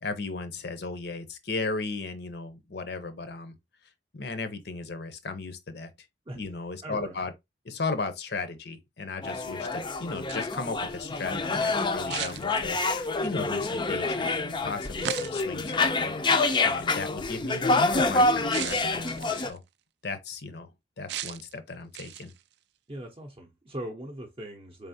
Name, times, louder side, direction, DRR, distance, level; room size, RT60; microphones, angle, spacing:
voice 1, 0.0-3.6 4.1-5.9 6.4-7.3 7.6-19.6 20.0-20.7 21.0-22.3, left 3 dB, 60° left, 0.7 m, -36 dB
voice 2, 6.8-7.3 22.9-24.9, right 1 dB, 30° right, 0.6 m, -40 dB
sound 1, 9.2-19.5, left 3 dB, 25° left, 0.4 m, -27 dB
sound 2, 10.1-10.6 12.1-13.0 15.0-15.6 16.5-16.7 18.5-19.6 21.1-21.5 21.9-22.4, right 11 dB, 60° right, 0.3 m, -36 dB
4.0 x 3.4 x 2.7 m
head